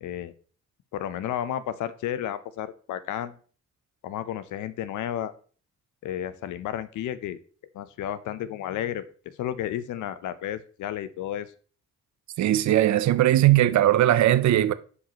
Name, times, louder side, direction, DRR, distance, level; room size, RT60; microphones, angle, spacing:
voice 1, 0.0-0.3 0.9-3.4 4.0-5.3 6.0-7.4 7.7-9.0 9.4-11.5, left 11 dB, 90° left, 0.7 m, -32 dB
voice 2, 12.4-14.7, right 13 dB, 70° right, 0.6 m, -19 dB
9.6 x 5.3 x 3.0 m
cardioid pair, 90°, 29 cm